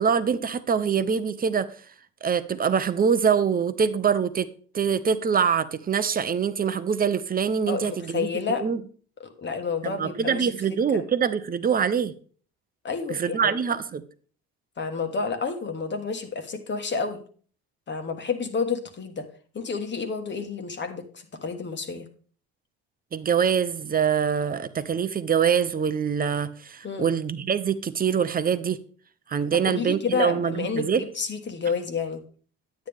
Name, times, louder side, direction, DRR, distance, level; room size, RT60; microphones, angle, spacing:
voice 1, 0.0-1.7 2.2-4.5 4.7-8.8 9.8-12.1 13.1-14.0 23.1-28.8 29.3-31.0, right 7 dB, 30° right, 0.7 m, -24 dB
voice 2, 7.7-8.6 9.4-10.5 10.9-11.0 12.8-13.5 14.8-17.2 17.9-19.3 19.5-22.1 26.8-27.1 29.5-32.2, left 5 dB, 35° left, 1.4 m, -30 dB
9.5 x 8.9 x 3.5 m
cardioid pair, 95°, 31 cm